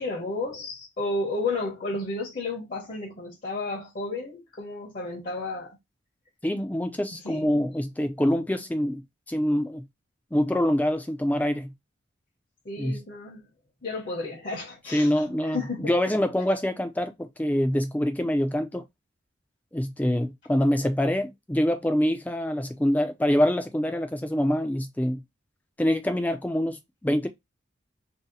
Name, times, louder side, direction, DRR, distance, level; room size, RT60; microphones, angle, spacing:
voice 1, 0.0-5.8 7.2-7.7 12.6-13.4 13.8-15.9, left 2 dB, 45° left, 0.8 m, -32 dB
voice 2, 6.4-9.9 10.3-11.7 12.8-13.0 14.9-18.8 19.7-25.2 25.8-27.3, left 1 dB, 10° left, 0.4 m, -25 dB
2.7 x 2.0 x 3.8 m
head